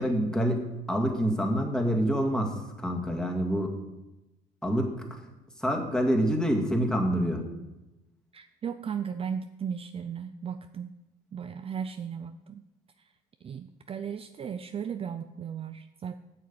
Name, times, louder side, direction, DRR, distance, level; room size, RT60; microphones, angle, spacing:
voice 1, 0.0-3.8 4.6-5.0 5.6-7.4, equal, 5° left, 2 dB, 2.0 m, -27 dB
voice 2, 8.3-10.9 11.3-12.7 13.0-13.1 13.4-16.2, right 7 dB, 35° right, 9 dB, 0.5 m, -36 dB
9.0 x 6.4 x 8.5 m, 1.0 s
cardioid pair, 110°, 17 cm